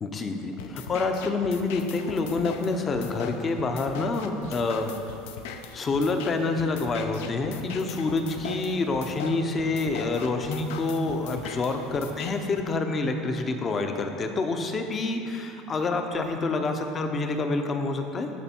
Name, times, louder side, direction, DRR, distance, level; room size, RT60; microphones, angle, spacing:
voice 1, 0.0-4.9 5.5-18.3, left 3 dB, 20° left, 5 dB, 0.6 m, -27 dB
sound 1, 0.6-12.6, left 6 dB, 75° left, 0.6 m, -40 dB
14.0 x 5.3 x 4.3 m, 2.7 s
cardioid pair, 175°, 0 cm